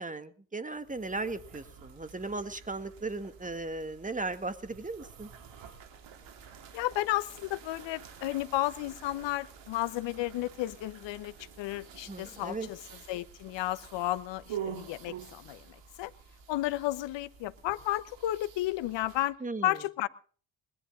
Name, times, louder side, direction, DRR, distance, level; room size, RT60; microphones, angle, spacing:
voice 1, 0.0-5.3 12.1-12.7 19.4-19.7, right 3 dB, 15° right, 11 dB, 2.1 m, -37 dB
sound 1, 0.7-19.3, right 8 dB, 70° right, 3.2 m, -48 dB
voice 2, 6.7-16.1 16.5-19.4 19.6-20.1, left 15 dB, 70° left, 17 dB, 1.0 m, -33 dB
21.5 x 11.5 x 3.7 m, 0.42 s
hypercardioid pair, 50°, 45 cm